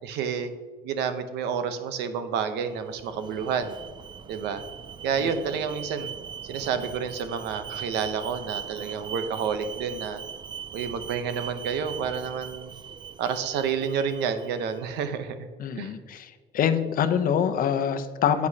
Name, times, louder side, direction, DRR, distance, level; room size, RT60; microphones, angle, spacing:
voice 1, 0.0-0.5 0.8-3.8 4.3-4.6 5.0-6.1 6.4-10.2 10.7-12.7 13.2-15.4 15.8-15.9, right 6 dB, 85° right, 9 dB, 0.8 m, -29 dB
Alarm, 2.8-14.8, right 8 dB, 25° right, 0.3 m, -40 dB
voice 2, 15.6-18.5, left 8 dB, 55° left, 9 dB, 0.7 m, -25 dB
9.5 x 8.3 x 2.8 m, 1.5 s
cardioid pair, 110°, 17 cm